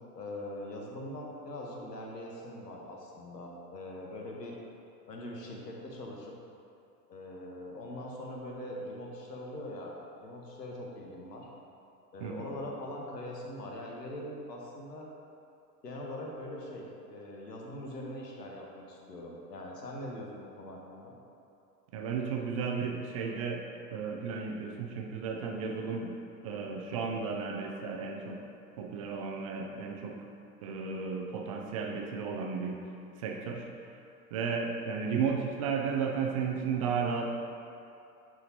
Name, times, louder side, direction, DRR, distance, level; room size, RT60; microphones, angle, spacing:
voice 1, 0.0-4.6 5.1-6.3 7.1-9.9 10.2-11.5 12.1-15.1 15.8-21.1, left 1 dB, 75° left, -1 dB, 1.4 m, -42 dB
voice 2, 12.2-12.5 21.9-23.6 23.9-26.1 26.4-28.4 28.8-30.2 30.6-32.8 33.2-33.7 34.3-37.3, right 5 dB, 25° right, 0 dB, 0.3 m, -33 dB
9.4 x 4.9 x 2.9 m, 2.6 s
figure-of-eight pair, 95°, 49 cm